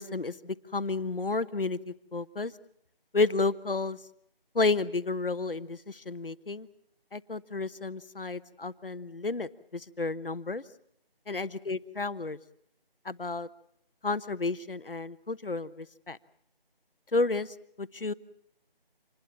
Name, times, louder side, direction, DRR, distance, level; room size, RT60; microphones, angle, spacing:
voice 1, 0.0-2.5 3.1-4.0 4.5-6.7 7.1-10.6 11.3-12.4 13.0-13.5 14.0-16.2 17.1-18.1, left 3 dB, 65° left, 14 dB, 1.1 m, -31 dB
26.5 x 20.5 x 7.1 m, 0.69 s
figure-of-eight pair, 180°, 30 cm